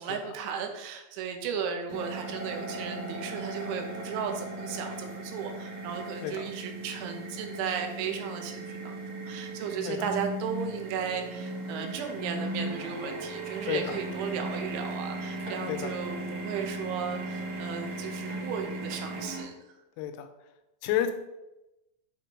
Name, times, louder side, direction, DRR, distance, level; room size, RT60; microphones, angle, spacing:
voice 1, 0.0-19.6, right 7 dB, 90° right, 4 dB, 3.1 m, -35 dB
sound 1, 1.9-19.4, right 2 dB, 50° right, 1.4 m, -37 dB
voice 2, 13.7-14.0 15.7-15.9 20.0-20.3 20.8-21.1, left 11 dB, 90° left, 8 dB, 3.2 m, -31 dB
8.1 x 3.0 x 4.9 m, 0.96 s
omnidirectional pair, 5.5 m